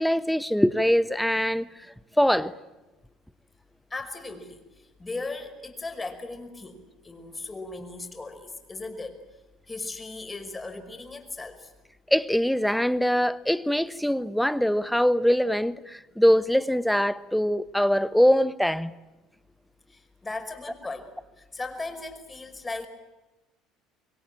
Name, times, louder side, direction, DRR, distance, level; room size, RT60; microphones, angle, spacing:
voice 1, 0.0-1.7 2.2-2.5 12.1-18.9, equal, ahead, 1.2 m, -23 dB
voice 2, 3.9-4.6 5.0-9.2 9.7-11.7 19.9-21.1 21.4-22.9, left 3 dB, 20° left, 5.3 m, -37 dB
26.0 x 22.5 x 8.9 m
hypercardioid pair, 65°, 0 cm